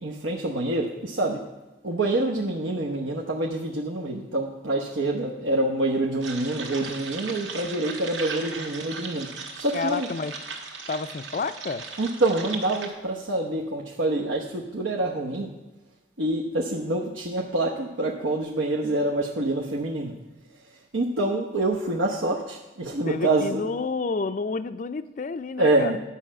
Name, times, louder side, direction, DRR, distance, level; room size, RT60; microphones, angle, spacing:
voice 1, 0.0-1.4 1.8-10.1 12.0-15.5 16.2-20.1 20.9-23.7 25.6-26.0, right 2 dB, 85° right, -2 dB, 1.0 m, -26 dB
sound 1, 6.2-12.9, right 4 dB, 70° right, 1.6 m, -37 dB
voice 2, 9.7-10.5 10.9-11.9 23.1-26.0, left 4 dB, 40° left, 13 dB, 0.4 m, -30 dB
11.0 x 5.6 x 7.4 m, 1.1 s
head